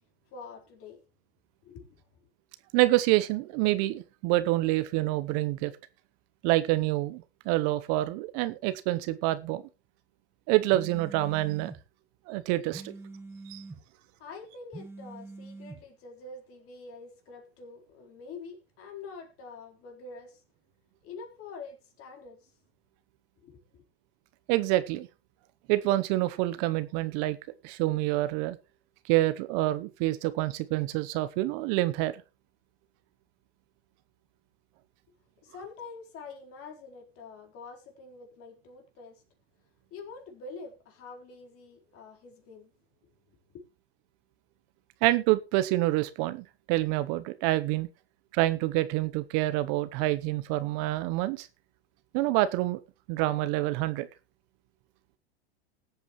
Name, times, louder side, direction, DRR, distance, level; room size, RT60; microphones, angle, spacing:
voice 1, 0.3-1.0 1.6-2.0 14.2-20.4 21.0-22.5 23.4-23.8 35.4-39.2 39.9-42.7 43.5-43.7, left 4 dB, 45° left, 3.9 m, -46 dB
voice 2, 2.7-5.7 6.4-9.6 10.5-11.7 12.3-12.9 13.5-13.6 24.5-25.1 25.7-27.4 27.6-28.6 29.1-32.2 45.0-47.9 48.3-51.5 52.1-52.8 53.1-54.1, right 17 dB, 50° right, 0.9 m, -27 dB
sound 1, 10.7-11.8 12.7-13.8 14.7-15.8, right 3 dB, 5° right, 1.7 m, -44 dB
19.5 x 8.3 x 3.1 m
hypercardioid pair, 110°, 32 cm